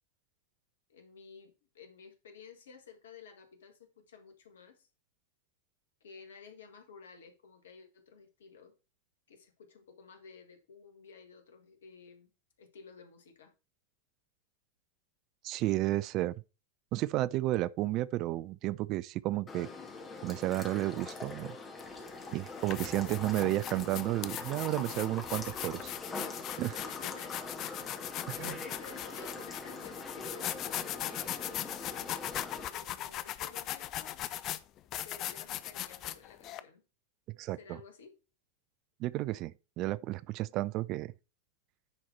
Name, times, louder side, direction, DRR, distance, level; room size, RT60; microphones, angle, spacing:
voice 1, 0.9-4.9 6.0-8.7 9.3-12.3 12.6-13.5 26.8-27.4 28.4-34.1 35.0-36.8 37.5-38.1, left 5 dB, 65° left, 1.7 m, -53 dB
voice 2, 15.4-16.4 16.9-19.7 20.2-21.6 22.3-25.9 26.6-26.8 28.3-28.5 37.4-37.8 39.0-41.1, right 16 dB, 40° right, 0.3 m, -32 dB
sound 1, 19.5-32.7, left 3 dB, 20° left, 2.0 m, -43 dB
sound 2, 21.8-21.9 22.5-36.6, left 13 dB, 35° left, 0.5 m, -39 dB
9.8 x 4.2 x 4.5 m
figure-of-eight pair, 90°, 0 cm